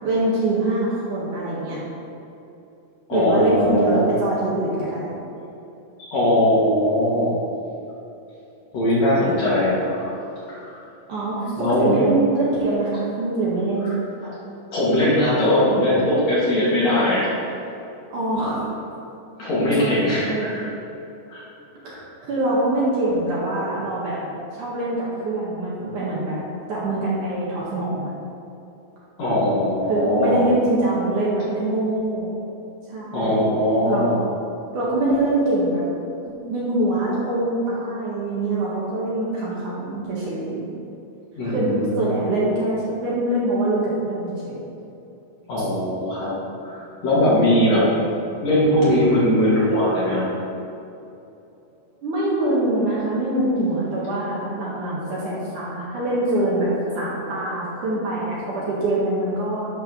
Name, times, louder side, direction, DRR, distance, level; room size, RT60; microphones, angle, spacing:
voice 1, 0.0-1.8 3.1-5.2 11.1-13.9 18.1-18.7 19.8-20.5 21.8-22.0 22.2-24.2 24.6-26.4 26.7-28.1 29.9-32.3 32.9-33.4 33.8-34.2 34.7-35.8 36.2-40.6 41.4-44.5 45.6-45.7 52.0-59.7, right 2 dB, 60° right, -7 dB, 2.8 m, -24 dB
voice 2, 3.1-4.0 6.0-7.4 8.7-10.2 10.5-10.8 11.6-11.9 14.2-14.3 14.7-17.3 19.4-20.7 21.3-21.4 21.9-22.0 29.2-30.4 33.1-34.2 41.4-41.9 45.5-46.3 46.6-47.9 48.4-50.3, left 1 dB, 50° left, -9 dB, 2.9 m, -20 dB
11.0 x 4.7 x 6.1 m, 2.8 s
omnidirectional pair, 4.7 m